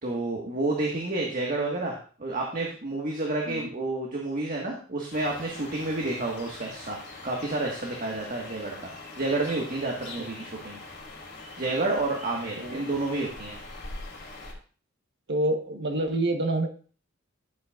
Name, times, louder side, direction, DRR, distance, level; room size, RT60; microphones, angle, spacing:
voice 1, 0.0-7.0 7.2-8.9 9.1-10.8 11.6-13.6, right 2 dB, 45° right, -1 dB, 1.7 m, -30 dB
sound 1, 5.1-14.5, left 3 dB, 55° left, 3.2 m, -43 dB
voice 2, 15.3-16.7, right 1 dB, 60° right, 5 dB, 1.3 m, -27 dB
12.5 x 8.1 x 2.5 m, 0.40 s
head